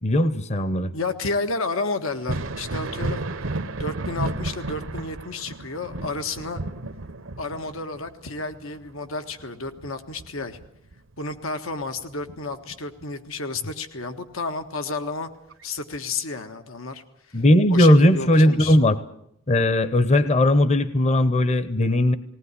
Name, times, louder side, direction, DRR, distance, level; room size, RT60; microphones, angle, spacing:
voice 1, 0.0-0.9 17.3-19.0 19.5-22.2, left 1 dB, 35° left, 14 dB, 0.9 m, -18 dB
voice 2, 0.9-3.2 3.7-6.6 7.4-10.6 11.2-15.3 15.6-17.0 17.7-18.8, left 3 dB, 85° left, 8 dB, 1.6 m, -31 dB
Thunder, 2.1-11.4 11.8-13.0 14.6-14.7 15.5-15.6, right 2 dB, 70° right, 0.9 m, -33 dB
20.0 x 18.5 x 9.8 m, 0.74 s
head